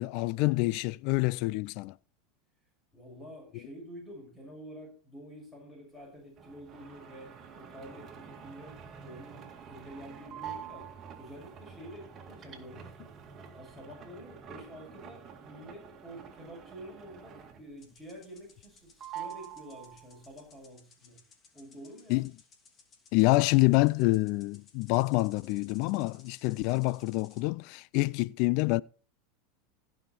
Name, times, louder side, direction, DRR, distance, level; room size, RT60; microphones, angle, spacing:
voice 1, 0.0-1.9 22.1-22.3 23.1-28.8, left 22 dB, 60° left, 0.4 m, -27 dB
voice 2, 2.9-10.9 11.2-13.2 13.5-21.2 21.5-22.2, equal, 15° left, 6.8 m, -48 dB
sound 1, 6.4-17.9 18.2-18.7 19.0-20.3, right 8 dB, 35° right, 2.1 m, -47 dB
sound 2, 17.8-27.5, left 5 dB, 35° left, 2.6 m, -61 dB
16.0 x 5.7 x 4.4 m
hypercardioid pair, 100°, 0 cm